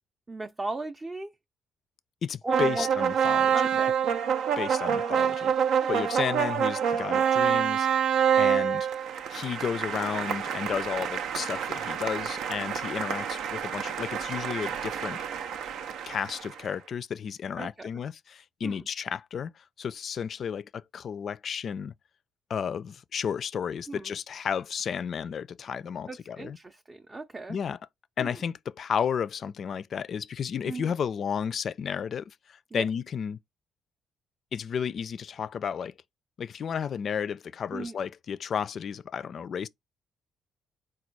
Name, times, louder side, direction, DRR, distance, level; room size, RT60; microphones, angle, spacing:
voice 1, 0.3-1.3 2.4-2.9 3.5-4.0 5.8-5.9 17.6-17.9 18.6-18.9 23.9-24.1 26.1-27.6 28.2-28.4 30.6-30.9 32.7-32.8 37.7-38.0, right 2 dB, 25° right, 0.4 m, -36 dB
voice 2, 2.2-3.5 4.6-5.5 5.9-7.9 8.4-8.9 9.3-15.2 16.1-19.5 19.8-21.9 22.5-26.6 27.5-27.8 28.2-33.4 34.5-35.9 36.4-39.7, left 7 dB, 55° left, 0.3 m, -32 dB
sound 1, 2.5-16.7, right 8 dB, 85° right, 0.4 m, -27 dB
4.1 x 2.2 x 4.5 m
cardioid pair, 90°, 0 cm